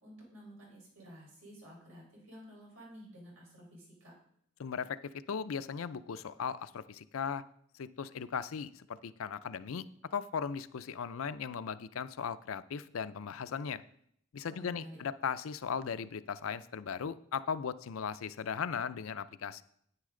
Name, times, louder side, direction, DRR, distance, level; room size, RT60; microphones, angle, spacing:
voice 1, 0.0-4.1 14.4-15.0, equal, 90° right, -3 dB, 4.7 m, -52 dB
voice 2, 4.6-5.0 5.3-7.4 7.7-9.8 10.1-13.8 14.3-19.6, left 6 dB, 85° left, 14 dB, 0.5 m, -37 dB
9.6 x 9.5 x 3.8 m, 0.70 s
head